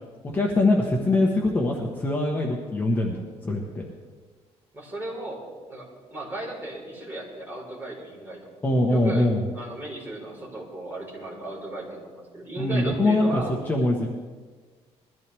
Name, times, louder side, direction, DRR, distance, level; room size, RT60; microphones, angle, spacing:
voice 1, 0.2-3.9 8.6-9.4 12.6-14.1, left 2 dB, 15° left, -1 dB, 1.3 m, -23 dB
voice 2, 4.7-5.4 5.7-8.5 8.9-9.3 9.5-13.5, right 2 dB, 20° right, -4 dB, 4.5 m, -35 dB
21.5 x 14.5 x 3.5 m, 1.4 s
cardioid pair, 175°, 11 cm